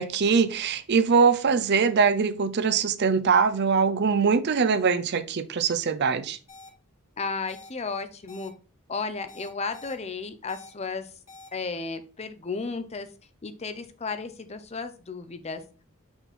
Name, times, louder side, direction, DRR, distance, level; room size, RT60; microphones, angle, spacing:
voice 1, 0.0-6.4, right 5 dB, 50° right, 0.5 m, -22 dB
sound 1, 6.5-6.7 7.5-7.7 8.3-8.5 9.3-9.9 10.5-10.7 11.3-11.5, left 3 dB, 65° left, 2.3 m, -47 dB
voice 2, 7.2-8.5 8.9-11.1 11.5-13.1 13.4-15.6, left 4 dB, 30° left, 0.6 m, -33 dB
5.7 x 4.2 x 4.2 m
head